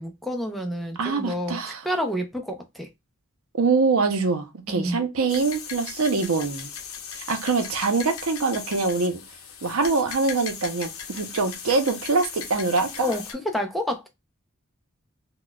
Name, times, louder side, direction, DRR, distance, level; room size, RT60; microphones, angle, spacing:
voice 1, 0.0-2.9 4.7-5.0 13.0-14.1, equal, ahead, 0.5 m, -29 dB
voice 2, 1.0-1.8 3.5-6.7 7.1-9.2 9.6-13.1, right 4 dB, 85° right, 0.7 m, -24 dB
sound 1, 5.3-13.3, left 7 dB, 80° left, 0.7 m, -38 dB
3.9 x 2.2 x 2.2 m
head